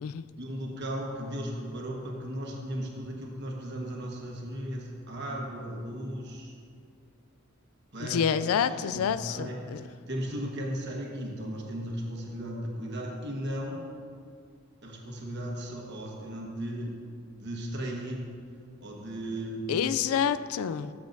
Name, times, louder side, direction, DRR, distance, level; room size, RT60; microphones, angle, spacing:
voice 1, 0.4-6.5 7.9-8.2 8.4-8.6 8.9-13.8 14.8-17.0 17.4-18.2 18.8-19.8, equal, 55° right, -1 dB, 1.2 m, -36 dB
voice 2, 8.0-9.8 19.7-20.9, left 7 dB, 80° left, 13 dB, 0.3 m, -28 dB
13.0 x 7.1 x 2.6 m, 2.2 s
head